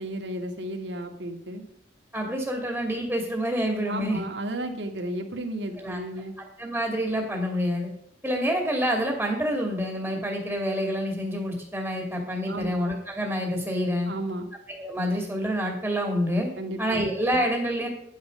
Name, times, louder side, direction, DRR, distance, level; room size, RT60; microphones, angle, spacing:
voice 1, 0.0-1.6 3.9-6.3 12.5-12.8 14.1-14.5 16.6-17.0, right 1 dB, 70° right, 4 dB, 2.0 m, -33 dB
voice 2, 2.1-4.2 5.8-6.0 6.6-7.9 8.2-14.1 14.7-16.5 16.8-17.9, equal, 5° right, 1 dB, 2.6 m, -27 dB
11.0 x 9.9 x 5.3 m, 0.74 s
head